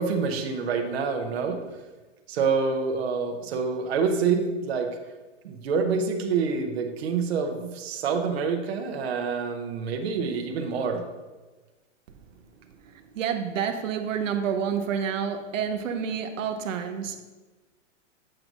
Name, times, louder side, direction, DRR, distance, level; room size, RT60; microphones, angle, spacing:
voice 1, 0.0-1.6 2.3-5.0 5.4-11.0, right 5 dB, 55° right, 4 dB, 0.7 m, -27 dB
voice 2, 12.8-17.2, right 7 dB, 85° right, 6 dB, 0.8 m, -29 dB
7.6 x 2.6 x 5.9 m, 1.2 s
supercardioid pair, 180°, 37 cm